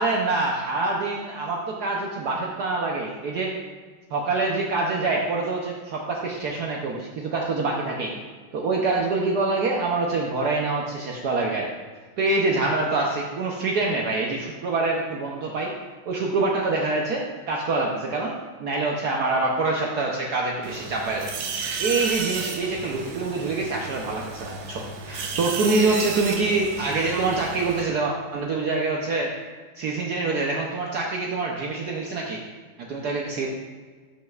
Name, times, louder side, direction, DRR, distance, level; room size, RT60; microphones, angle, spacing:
voice 1, 0.0-3.5 4.1-8.1 8.5-11.7 12.2-15.7 16.1-21.3 21.8-29.3 29.8-32.4 32.8-33.5, right 3 dB, 60° right, -1 dB, 1.2 m, -25 dB
sound 1, 20.6-27.8, right 5 dB, 80° right, 1.6 m, -33 dB
13.0 x 6.3 x 2.4 m, 1.5 s
omnidirectional pair, 2.2 m